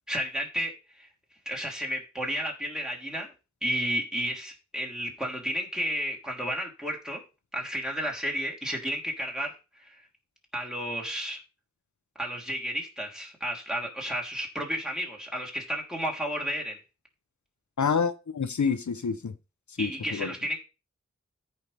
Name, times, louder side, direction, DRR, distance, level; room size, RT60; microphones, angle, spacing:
voice 1, 0.1-1.1 1.4-3.3 3.6-7.2 7.5-10.0 10.5-11.4 12.2-16.8 19.8-20.6, equal, ahead, -2 dB, 3.3 m, -32 dB
voice 2, 17.8-19.3 19.8-20.3, left 5 dB, 80° left, 12 dB, 0.8 m, -28 dB
14.5 x 5.6 x 3.4 m, 0.30 s
wide cardioid pair, 55°, 29 cm